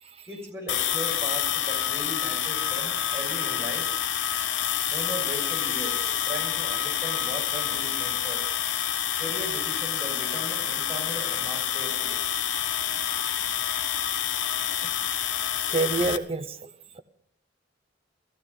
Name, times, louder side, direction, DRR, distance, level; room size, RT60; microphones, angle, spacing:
voice 1, 0.2-3.9 4.9-8.4 9.2-12.2, right 1 dB, 15° right, 6.7 m, -38 dB
sound 1, 0.7-16.2, left 10 dB, 80° left, 0.9 m, -28 dB
voice 2, 15.7-17.0, right 3 dB, 30° right, 1.0 m, -29 dB
15.0 x 15.0 x 5.7 m
head